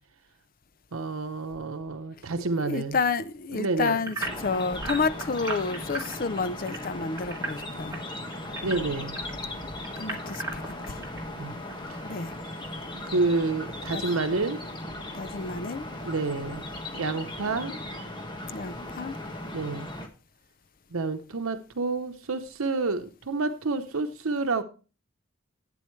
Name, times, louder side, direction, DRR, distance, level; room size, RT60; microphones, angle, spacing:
voice 1, 0.9-3.0 3.5-4.0 8.6-9.2 11.3-11.6 11.9-12.1 13.1-14.6 16.0-17.7 19.5-19.9 20.9-24.6, right 3 dB, 90° right, 0.9 m, -29 dB
voice 2, 2.6-8.0 10.0-11.0 12.0-12.3 13.9-14.0 15.1-15.9 18.5-19.2, left 4 dB, 40° left, 0.5 m, -30 dB
sound 1, 3.9-9.3 9.8-11.2 11.7-11.8 12.3-12.4, right 2 dB, 15° right, 2.1 m, -36 dB
sound 2, 4.2-20.1, left 1 dB, 20° left, 1.5 m, -37 dB
13.0 x 8.7 x 3.2 m
head